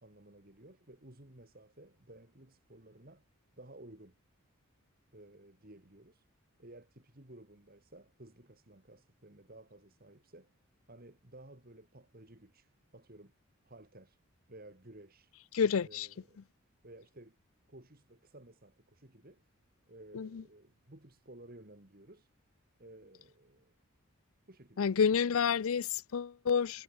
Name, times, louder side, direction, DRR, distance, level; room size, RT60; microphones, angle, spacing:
voice 1, 0.0-3.3 3.6-4.2 5.1-6.2 6.6-10.5 10.9-13.3 13.6-14.2 14.5-15.3 15.8-16.5 16.8-17.4 17.7-19.4 19.9-22.3 22.8-23.8 24.5-24.8, right 1 dB, 40° right, 2.4 m, -55 dB
voice 2, 15.5-16.1 20.1-20.4 24.8-26.8, left 6 dB, 70° left, 0.4 m, -29 dB
head